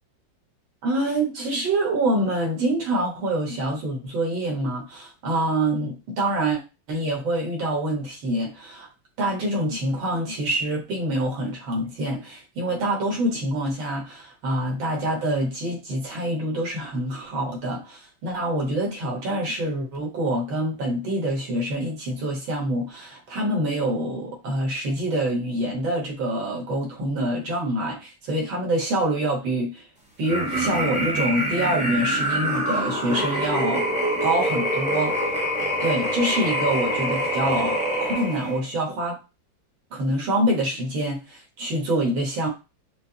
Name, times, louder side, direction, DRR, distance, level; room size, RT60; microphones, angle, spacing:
voice 1, 0.8-6.6 6.9-8.9 9.2-29.8 30.2-33.9 34.2-35.1 35.8-39.2 39.9-42.5, right 1 dB, 90° right, -1 dB, 2.1 m, -26 dB
sound 1, 30.2-38.6, equal, 10° right, 0.5 m, -25 dB
5.4 x 2.0 x 2.8 m, 0.28 s
omnidirectional pair, 2.1 m